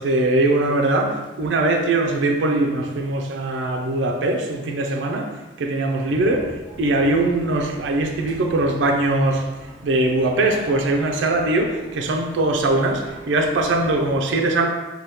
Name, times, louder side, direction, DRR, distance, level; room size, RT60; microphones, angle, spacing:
voice 1, 0.0-9.5 9.8-14.7, right 2 dB, 75° right, 0.4 m, -21 dB
sound 1, 6.1-14.1, equal, ahead, 0.9 m, -43 dB
2.8 x 2.2 x 3.4 m
head